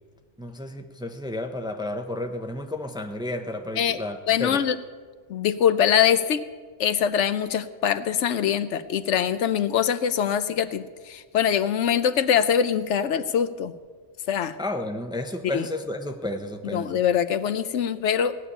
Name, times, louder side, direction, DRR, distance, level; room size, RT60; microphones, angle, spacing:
voice 1, 0.4-4.6 14.6-17.0, left 1 dB, 5° right, 5 dB, 0.7 m, -32 dB
voice 2, 4.3-4.8 5.3-6.5 6.8-13.7 14.3-14.6 15.5-15.7 16.7-18.4, left 8 dB, 75° left, 12 dB, 1.0 m, -23 dB
18.0 x 7.0 x 9.8 m, 1.5 s
omnidirectional pair, 1.3 m